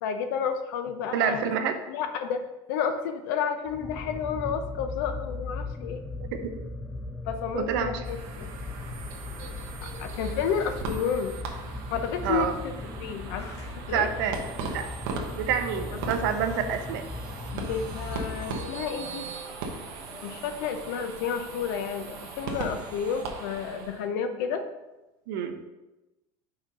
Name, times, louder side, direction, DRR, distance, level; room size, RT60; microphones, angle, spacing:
voice 1, 0.0-1.5 1.9-2.4 2.7-6.0 7.3-8.5 9.8-11.3 11.9-12.5 13.0-13.5 13.9-14.1 15.9-16.0 17.5-19.3 20.2-24.6, left 7 dB, 65° left, 8 dB, 0.7 m, -31 dB
voice 2, 1.1-1.7 6.2-6.3 7.5-8.0 12.2-12.6 13.9-14.4 14.7-14.9 15.4-17.0 25.3-25.6, right 8 dB, 75° right, 7 dB, 0.8 m, -27 dB
sound 1, 3.7-19.0, left 3 dB, 10° left, 0.3 m, -38 dB
sound 2, 8.0-24.1, right 4 dB, 60° right, 1.2 m, -39 dB
sound 3, 12.8-12.9 13.1-14.1 14.5-20.7, left 2 dB, 30° left, 1.8 m, -50 dB
5.7 x 4.3 x 5.2 m, 1.0 s
cardioid pair, 180°, 11 cm